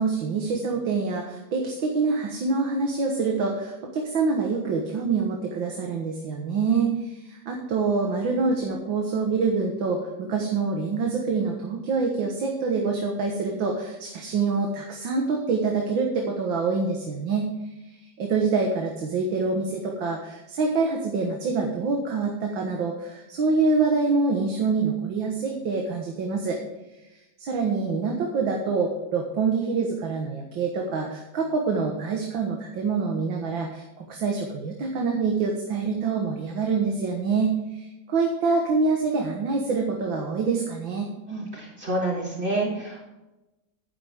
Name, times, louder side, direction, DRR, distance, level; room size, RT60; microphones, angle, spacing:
voice 1, 0.0-17.5 17.8-26.6 27.4-41.1, right 4 dB, 80° right, 1 dB, 2.1 m, -26 dB
voice 2, 41.3-43.1, right 2 dB, 30° right, -5 dB, 4.5 m, -28 dB
11.5 x 10.5 x 3.6 m, 1.0 s
omnidirectional pair, 2.1 m